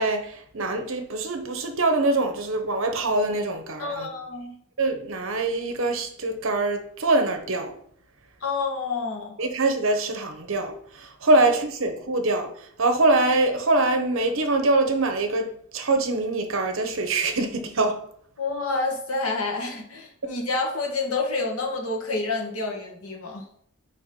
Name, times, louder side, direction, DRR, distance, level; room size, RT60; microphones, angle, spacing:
voice 1, 0.0-4.1 4.8-7.7 9.4-18.0 20.2-20.3, right 2 dB, 60° right, 0.9 m, -24 dB
voice 2, 3.8-4.6 8.4-9.3 18.4-23.4, left 3 dB, 75° left, 1.4 m, -28 dB
4.8 x 4.5 x 5.2 m
head